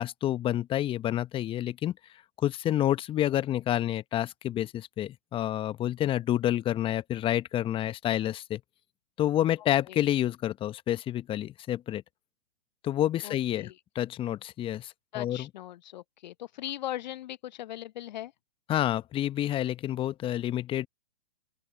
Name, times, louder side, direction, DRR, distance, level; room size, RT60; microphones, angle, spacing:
voice 1, 0.0-1.9 2.4-8.6 9.2-12.0 12.8-15.5 18.7-20.9, left 12 dB, 15° left, 1.1 m, -29 dB
voice 2, 13.2-13.8 15.1-18.3, left 13 dB, 45° left, 0.8 m, -39 dB
open air
figure-of-eight pair, 120°, 31 cm